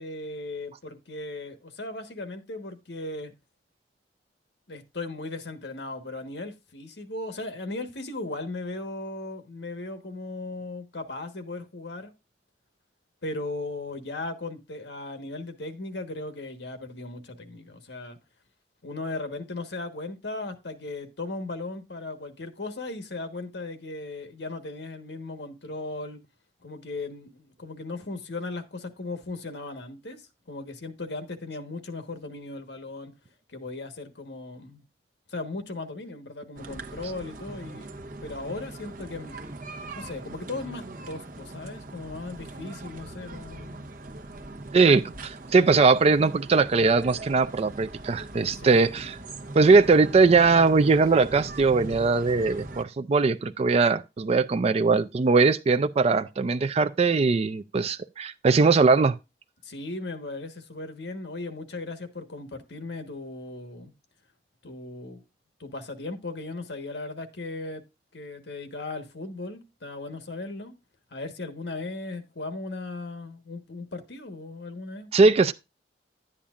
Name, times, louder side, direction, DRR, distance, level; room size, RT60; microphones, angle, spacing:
voice 1, 0.0-3.3 4.7-12.1 13.2-18.2 18.8-26.2 26.6-33.1 33.5-34.8 35.3-37.9 38.2-39.4 39.9-43.8 48.5-48.9 59.6-63.9 64.6-65.2 65.6-67.8 68.1-70.7 71.1-75.1, left 2 dB, 75° left, 1.3 m, -37 dB
sound 1, 36.6-52.8, right 2 dB, 55° right, 1.1 m, -41 dB
voice 2, 44.7-49.2 49.5-59.1 75.1-75.5, right 4 dB, 35° right, 0.4 m, -20 dB
11.5 x 8.6 x 2.4 m
head